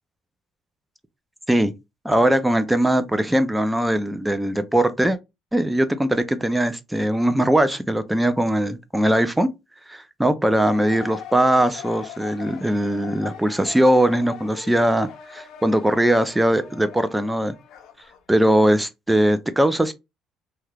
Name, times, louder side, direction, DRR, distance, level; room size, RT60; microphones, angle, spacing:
voice 1, 2.0-5.2 5.5-9.5 9.9-17.6 18.3-19.9, right 1 dB, 5° right, 0.4 m, -20 dB
sound 1, 10.5-18.2, left 9 dB, 70° left, 0.5 m, -40 dB
2.8 x 2.4 x 3.2 m
cardioid pair, 110°, 0 cm